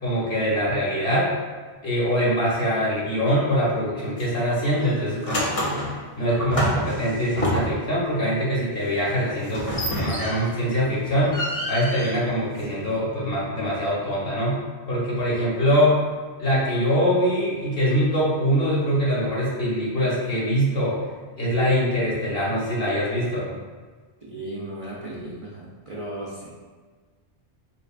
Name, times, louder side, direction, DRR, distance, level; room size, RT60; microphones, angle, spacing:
voice 1, 0.0-1.3 1.8-9.7 10.0-11.4 11.7-14.6 14.9-16.0 16.4-21.0 21.4-23.5, equal, 60° left, -7 dB, 1.4 m, -23 dB
sound 1, 4.2-4.5 4.8-7.9 9.5-10.7 11.0-13.0, equal, 40° left, 0.6 m, -28 dB
voice 2, 24.2-26.5, right 1 dB, 40° right, -7 dB, 0.5 m, -35 dB
4.1 x 3.2 x 2.5 m, 1.4 s
omnidirectional pair, 1.1 m